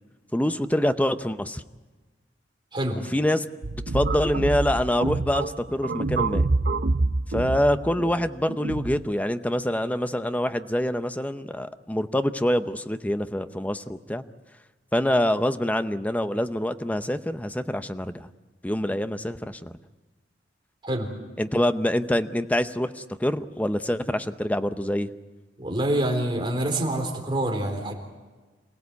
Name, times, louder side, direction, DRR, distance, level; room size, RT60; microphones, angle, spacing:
voice 1, 0.3-1.6 3.1-3.4 3.9-6.5 7.3-14.2 14.9-18.3 18.6-19.7 21.4-25.1, left 1 dB, 10° left, 10 dB, 0.7 m, -25 dB
sound 1, 3.6-9.0, right 3 dB, 55° right, 0.7 m, -27 dB
voice 2, 25.6-27.9, right 1 dB, 25° right, 2 dB, 3.9 m, -26 dB
27.5 x 17.0 x 8.3 m, 1.3 s
head